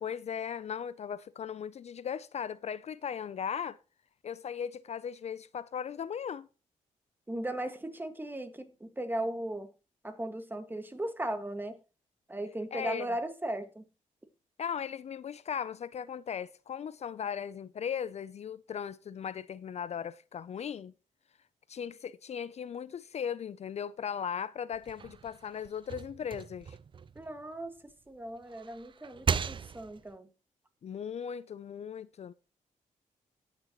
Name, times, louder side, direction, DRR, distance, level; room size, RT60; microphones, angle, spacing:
voice 1, 0.0-3.8 4.2-6.5 12.7-13.1 14.6-20.9 21.7-26.8 30.8-32.3, left 8 dB, 55° left, 0.4 m, -37 dB
voice 2, 7.3-9.7 10.0-11.8 12.3-13.9 27.2-27.8 28.1-30.3, right 1 dB, 15° right, 1.7 m, -37 dB
sound 1, 24.7-27.9 28.4-30.2, right 6 dB, 35° right, 0.4 m, -37 dB
18.0 x 6.7 x 3.0 m
cardioid pair, 80°, 14 cm